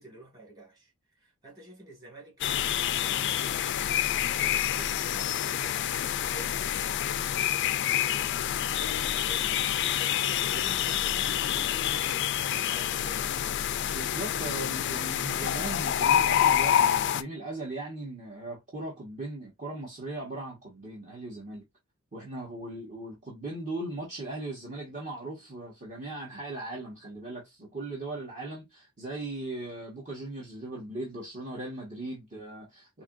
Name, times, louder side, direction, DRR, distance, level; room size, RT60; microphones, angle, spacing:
voice 1, 0.0-4.0 4.4-7.7 8.0-12.3 12.6-13.4, right 1 dB, 20° right, 2.0 m, -49 dB
sound 1, 2.4-17.2, left 10 dB, 60° left, 0.3 m, -27 dB
voice 2, 13.9-21.6 22.1-33.0, right 2 dB, 40° right, 1.4 m, -38 dB
4.5 x 2.8 x 2.5 m
head